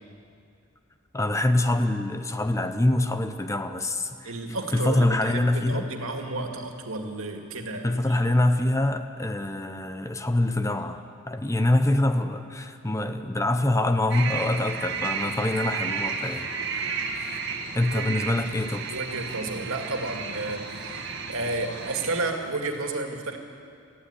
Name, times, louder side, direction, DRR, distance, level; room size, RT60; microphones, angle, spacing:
voice 1, 1.1-4.3 4.7-5.9 7.8-11.0 11.3-16.5 17.1-17.4 17.7-18.9, left 1 dB, 15° left, 8 dB, 0.8 m, -25 dB
voice 2, 4.2-8.2 17.9-18.1 18.9-21.0 21.3-23.4, right 2 dB, 85° right, 3 dB, 2.3 m, -32 dB
sound 1, 14.1-22.2, right 5 dB, 55° right, 1.9 m, -33 dB
19.0 x 14.5 x 9.8 m, 2.3 s
head